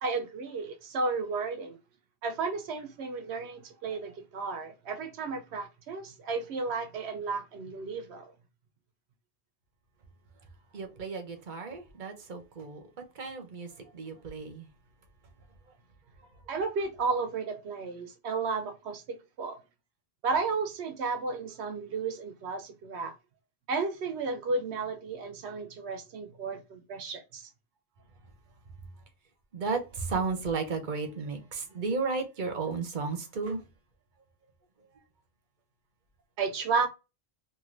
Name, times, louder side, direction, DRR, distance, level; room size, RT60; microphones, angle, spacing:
voice 1, 0.0-1.8 2.2-8.3 16.5-19.6 20.2-23.2 23.7-27.5 36.4-36.9, right 4 dB, 80° right, 0.9 m, -33 dB
voice 2, 10.7-12.8 13.1-14.7 29.5-33.6, right 4 dB, 50° right, 0.8 m, -34 dB
3.1 x 2.6 x 2.5 m
omnidirectional pair, 1.1 m